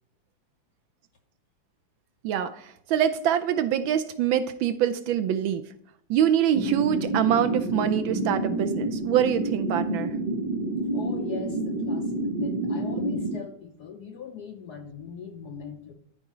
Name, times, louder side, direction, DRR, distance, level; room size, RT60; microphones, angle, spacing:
voice 1, 2.2-5.6 6.1-10.1, right 10 dB, 75° right, 11 dB, 1.2 m, -25 dB
sound 1, 6.5-13.4, right 1 dB, 55° right, 0.5 m, -28 dB
voice 2, 10.9-15.9, left 6 dB, 65° left, 4 dB, 1.0 m, -40 dB
12.5 x 4.7 x 3.0 m, 0.72 s
omnidirectional pair, 2.4 m